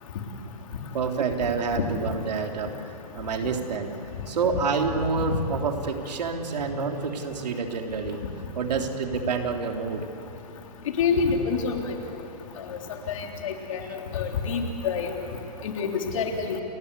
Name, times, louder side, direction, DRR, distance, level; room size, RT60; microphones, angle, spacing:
voice 1, 0.9-2.7 3.1-4.0 4.3-8.2 8.5-10.1 13.8-14.2, right 5 dB, 80° right, 3 dB, 3.3 m, -28 dB
voice 2, 11.0-11.8 12.7-12.8 13.2-13.8 14.1-15.1 15.6-16.6, left 5 dB, 50° left, 2 dB, 3.5 m, -27 dB
29.5 x 20.0 x 8.3 m, 2.8 s
hypercardioid pair, 165°, 21 cm